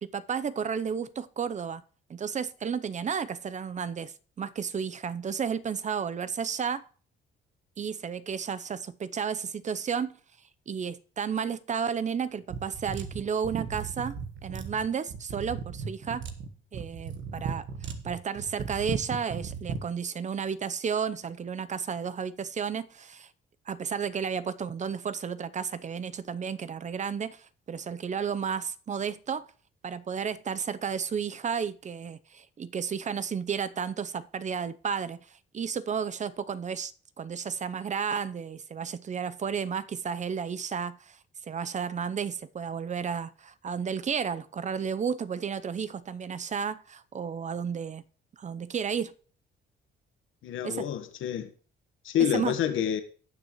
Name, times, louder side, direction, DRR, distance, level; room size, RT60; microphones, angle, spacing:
voice 1, 0.0-1.8 2.1-6.8 7.8-10.1 10.7-16.2 16.7-23.3 23.7-29.5 29.8-36.9 37.2-41.2 41.5-48.0 48.4-49.1 50.6-50.9 52.2-52.6, right 6 dB, 35° right, 0.7 m, -32 dB
sound 1, 12.5-19.9, right 6 dB, 70° right, 1.4 m, -36 dB
voice 2, 50.4-51.5 52.0-53.0, left 10 dB, 80° left, 1.3 m, -28 dB
18.5 x 6.4 x 3.1 m
cardioid pair, 90°, 20 cm